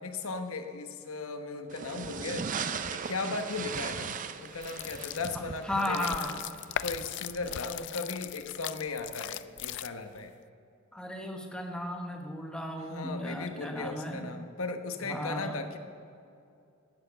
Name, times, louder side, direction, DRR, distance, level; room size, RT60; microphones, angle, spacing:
voice 1, 0.0-2.6 2.9-6.2 6.8-10.3 12.9-15.8, left 3 dB, 75° left, 7 dB, 1.1 m, -37 dB
sound 1, 1.7-7.7, right 6 dB, 40° right, 0.5 m, -39 dB
sound 2, 4.5-10.2, left 12 dB, 55° left, 0.3 m, -39 dB
voice 2, 5.6-6.4 10.9-14.3 15.0-15.6, left 1 dB, 5° left, 2 dB, 1.2 m, -35 dB
12.0 x 8.9 x 6.8 m, 2.6 s
head